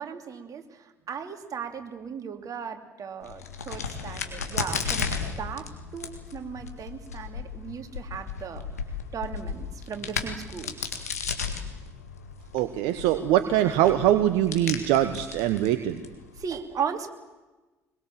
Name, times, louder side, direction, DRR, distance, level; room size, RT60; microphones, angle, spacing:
voice 1, 0.0-8.7 9.1-11.0 16.4-17.1, right 7 dB, 45° right, 6 dB, 2.9 m, -37 dB
Crack, 3.2-16.5, left 6 dB, 90° left, 1.9 m, -35 dB
voice 2, 12.5-16.0, right 12 dB, 70° right, 10 dB, 1.1 m, -23 dB
23.5 x 21.5 x 7.6 m, 1.2 s
hypercardioid pair, 55°, 8 cm